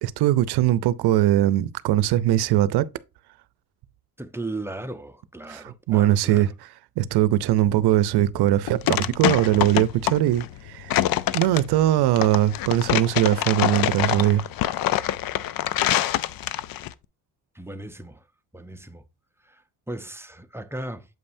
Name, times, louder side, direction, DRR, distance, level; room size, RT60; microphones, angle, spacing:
voice 1, 0.0-2.9 5.5-6.5 7.0-10.9 11.3-14.4, right 13 dB, 75° right, 0.6 m, -21 dB
voice 2, 4.2-6.4 17.5-18.2 18.5-19.0 19.4-21.1, right 2 dB, 5° right, 0.7 m, -36 dB
sound 1, 8.3-16.9, left 13 dB, 60° left, 0.5 m, -25 dB
7.6 x 5.4 x 2.6 m
cardioid pair, 95°, 39 cm